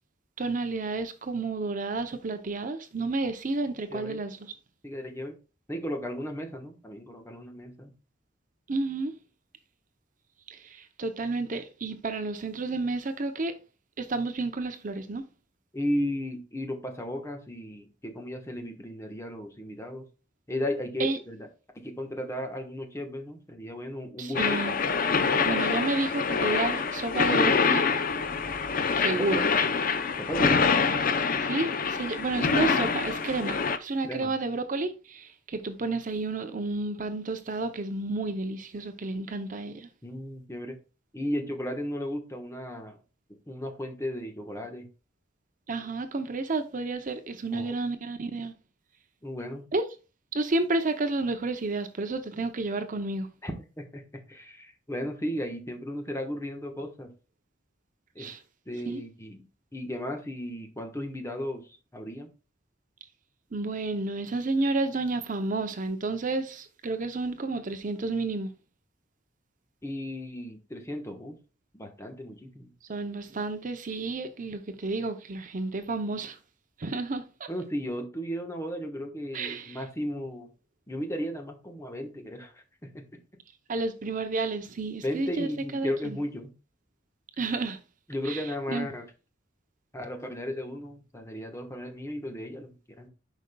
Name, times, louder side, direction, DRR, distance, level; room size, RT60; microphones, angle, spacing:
voice 1, 0.4-4.5 8.7-9.1 10.5-13.5 14.0-15.2 21.0-21.2 24.2-24.8 25.4-27.8 28.9-29.5 31.4-39.9 45.7-48.5 49.7-49.8 50.3-53.3 58.2-58.4 58.9-59.0 63.5-68.5 72.9-76.4 76.8-77.5 79.3-79.8 83.7-86.2 87.4-87.8 88.2-88.9, right 3 dB, 45° right, 0.6 m, -31 dB
voice 2, 4.8-5.4 5.7-7.9 15.7-20.1 20.5-21.5 21.7-24.6 29.1-29.6 30.2-30.8 34.0-34.3 40.0-40.8 41.1-43.0 43.5-44.9 47.5-47.8 49.2-49.6 53.4-57.1 58.1-58.4 58.7-59.4 59.7-62.3 69.8-71.3 71.7-72.7 77.5-80.5 80.9-83.0 85.0-86.5 88.1-89.1 89.9-93.1, equal, 15° left, 1.1 m, -35 dB
sound 1, 24.3-33.8, left 5 dB, 45° left, 0.6 m, -25 dB
10.5 x 5.2 x 2.2 m
head